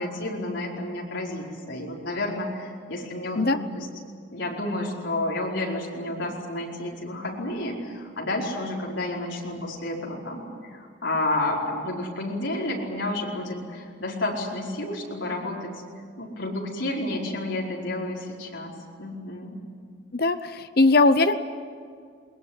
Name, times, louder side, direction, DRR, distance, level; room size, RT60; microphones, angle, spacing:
voice 1, 0.0-3.9 4.3-15.7 16.2-18.7 19.0-19.6, left 1 dB, 65° left, -2 dB, 4.9 m, -30 dB
voice 2, 20.1-21.3, left 3 dB, 50° left, 10 dB, 0.9 m, -20 dB
21.5 x 21.5 x 9.9 m, 2.1 s
head